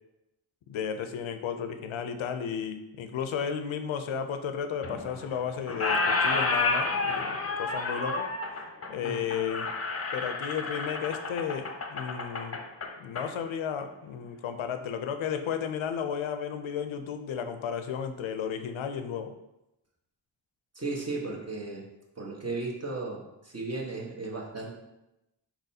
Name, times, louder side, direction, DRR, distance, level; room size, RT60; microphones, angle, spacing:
voice 1, 0.7-8.3 8.9-9.7 10.1-12.6 13.0-19.3, left 7 dB, 75° left, 8 dB, 0.6 m, -33 dB
Squeak, 4.8-5.4 5.7-13.3, left 3 dB, 30° left, 0.7 m, -30 dB
voice 2, 20.7-21.8 22.2-24.7, right 3 dB, 30° right, -2 dB, 1.2 m, -35 dB
4.4 x 4.0 x 2.7 m, 0.93 s
cardioid pair, 50°, 47 cm